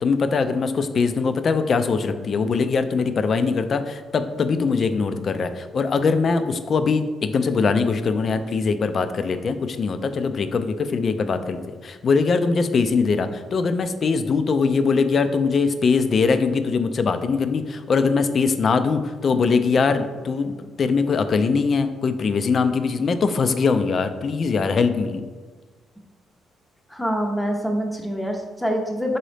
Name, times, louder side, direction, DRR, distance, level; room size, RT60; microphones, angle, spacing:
voice 1, 0.0-25.2, left 4 dB, 50° left, 10 dB, 0.3 m, -22 dB
voice 2, 26.9-29.2, equal, 10° left, 2 dB, 0.6 m, -25 dB
4.0 x 3.7 x 3.3 m, 1.4 s
cardioid pair, 90°, 0 cm